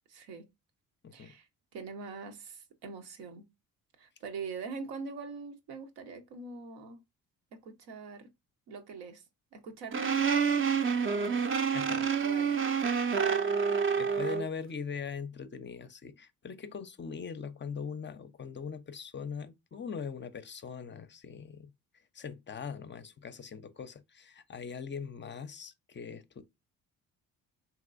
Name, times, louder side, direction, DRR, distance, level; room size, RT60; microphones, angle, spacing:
voice 1, 0.1-0.5 1.1-1.5 1.7-3.5 4.0-7.0 7.5-8.3 8.7-9.2 9.5-10.3 12.2-12.5, right 4 dB, 80° right, 0.9 m, -43 dB
sound 1, 9.9-14.5, right 6 dB, 35° right, 0.6 m, -28 dB
voice 2, 11.7-12.1 12.9-13.6 14.0-21.7 22.1-26.4, left 6 dB, 30° left, 0.5 m, -41 dB
3.0 x 2.9 x 2.4 m
supercardioid pair, 65°, 37 cm